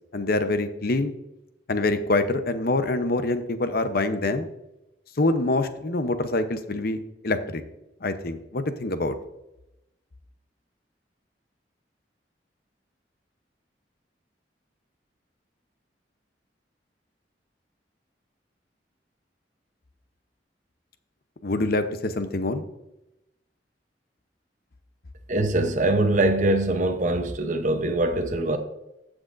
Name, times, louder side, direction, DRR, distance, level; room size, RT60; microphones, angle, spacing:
voice 1, 0.1-1.1 1.7-4.5 5.2-7.0 7.2-7.6 8.0-9.2 21.4-22.6, left 2 dB, 55° left, 0.8 m, -25 dB
voice 2, 25.3-28.6, right 2 dB, 45° right, 0.8 m, -23 dB
15.5 x 6.3 x 2.6 m
head